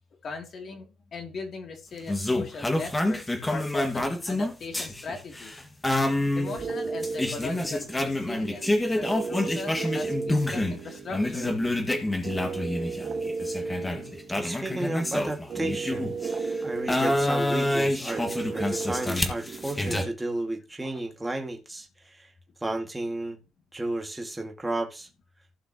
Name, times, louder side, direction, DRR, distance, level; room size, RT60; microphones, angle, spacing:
voice 1, 0.2-5.6 6.3-11.5 18.8-18.9 20.8-20.9, left 3 dB, 55° left, 2.8 m, -39 dB
sound 1, 2.1-10.8 11.1-16.4 16.9-20.0, left 1 dB, 15° left, 1.9 m, -28 dB
sound 2, 6.4-20.1, right 4 dB, 50° right, 1.6 m, -35 dB
voice 2, 14.3-16.1 16.6-22.3 22.6-23.4 23.7-25.1, right 2 dB, 10° right, 2.1 m, -33 dB
15.5 x 5.9 x 3.0 m
cardioid pair, 90°, 0 cm